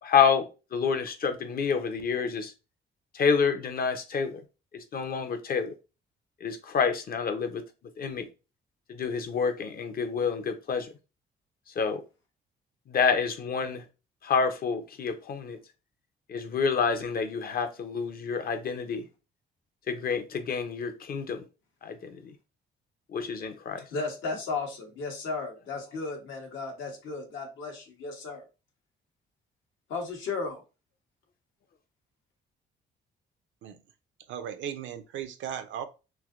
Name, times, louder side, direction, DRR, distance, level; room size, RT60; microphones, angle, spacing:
voice 1, 0.0-2.5 3.1-4.4 4.7-5.7 6.4-7.6 8.0-8.3 8.9-10.9 11.8-12.0 12.9-13.8 14.2-15.6 16.3-19.0 19.9-21.4 21.8-22.3 23.1-23.8, left 6 dB, 50° left, 0.7 m, -28 dB
voice 2, 23.9-28.4 29.9-30.6, left 4 dB, 75° left, 1.1 m, -34 dB
voice 3, 34.3-35.8, right 9 dB, 70° right, 0.5 m, -36 dB
3.3 x 2.7 x 2.4 m
cardioid pair, 90°, 20 cm